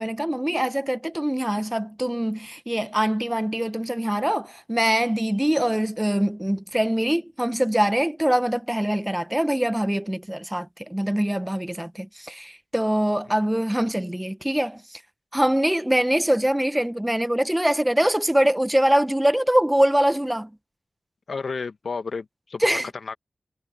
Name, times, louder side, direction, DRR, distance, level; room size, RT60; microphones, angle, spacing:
voice 1, 0.0-15.0 15.3-20.5 22.6-22.9, right 1 dB, 10° right, 0.5 m, -23 dB
voice 2, 21.3-23.1, left 4 dB, 75° left, 1.2 m, -32 dB
wide cardioid pair, 110°, 0 cm